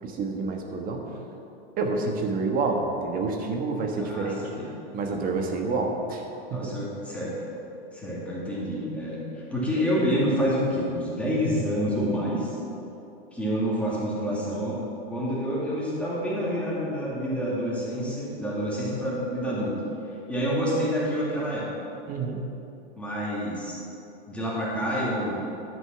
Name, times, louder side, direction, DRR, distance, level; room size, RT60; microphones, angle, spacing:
voice 1, 0.0-1.2 1.8-4.5 4.9-6.8 22.1-22.4, right 3 dB, 25° right, 2 dB, 1.3 m, -28 dB
voice 2, 4.0-4.7 6.5-7.3 7.9-12.6 13.3-14.8 15.1-19.8 20.3-21.7 23.0-23.8 24.3-25.4, equal, 5° left, -7 dB, 2.5 m, -28 dB
11.5 x 6.0 x 5.9 m, 2.9 s
hypercardioid pair, 135°, 32 cm